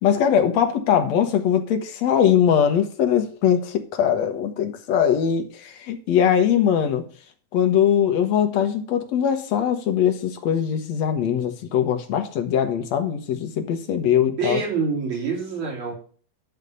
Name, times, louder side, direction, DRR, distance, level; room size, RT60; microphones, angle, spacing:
voice 1, 0.0-7.0 7.5-14.6, left 9 dB, 70° left, 6 dB, 2.3 m, -21 dB
voice 2, 14.2-16.0, right 4 dB, 70° right, -2 dB, 4.6 m, -26 dB
11.0 x 4.1 x 6.8 m, 0.42 s
omnidirectional pair, 3.4 m